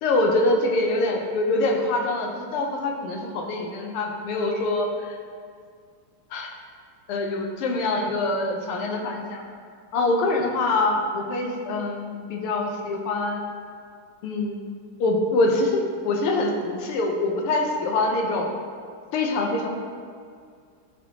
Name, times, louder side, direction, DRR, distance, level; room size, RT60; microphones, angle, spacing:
voice 1, 0.0-5.2 6.3-6.5 7.1-9.4 9.9-13.4 14.2-14.6 15.0-15.7 16.0-18.5 19.1-19.7, left 2 dB, 90° left, 1 dB, 1.7 m, -24 dB
10.5 x 4.3 x 2.9 m, 2.2 s
omnidirectional pair, 2.4 m